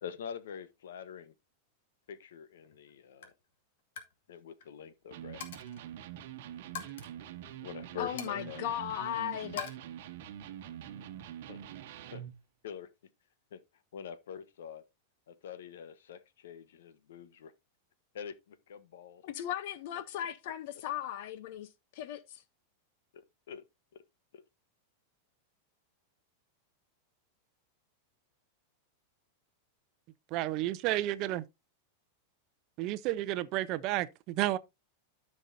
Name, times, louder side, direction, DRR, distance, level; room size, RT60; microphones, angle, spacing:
voice 1, 0.0-1.3 2.1-3.3 4.3-5.4 7.6-8.6 11.5-11.6 12.1-12.2 12.6-12.9 13.5-13.6 13.9-14.8 15.4-17.5 18.1-19.2 23.1-23.6 24.3-24.4, left 8 dB, 85° left, 1.1 m, -45 dB
Coin (dropping), 2.6-2.9 3.2-3.5 3.8-4.1 4.4-4.7 5.4-5.8 6.8-7.1 8.2-9.1 9.6-9.7, left 7 dB, 70° left, 2.2 m, -43 dB
Electric guitar, 5.1-12.4, right 10 dB, 60° right, 1.0 m, -45 dB
voice 2, 8.0-9.7 19.2-22.4, left 11 dB, 55° left, 0.7 m, -37 dB
voice 3, 30.3-31.4 32.8-34.6, right 15 dB, 35° right, 0.6 m, -31 dB
13.5 x 5.4 x 2.7 m
supercardioid pair, 160°, 0 cm